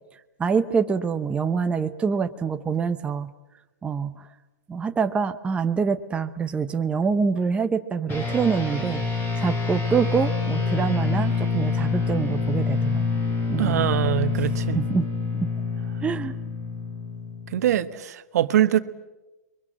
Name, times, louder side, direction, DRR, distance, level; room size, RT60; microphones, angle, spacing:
voice 1, 0.4-3.3 3.8-4.3 4.7-9.0 9.4-13.1 13.5-13.8 14.7-15.1 15.3-15.5 16.0-16.4, right 6 dB, 10° right, 0.8 m, -25 dB
sound 1, 8.1-17.8, left 4 dB, 25° left, 5.1 m, -26 dB
voice 2, 13.6-14.8 17.5-18.8, right 11 dB, 70° right, 1.4 m, -23 dB
29.0 x 23.0 x 7.5 m
hypercardioid pair, 140°, 9 cm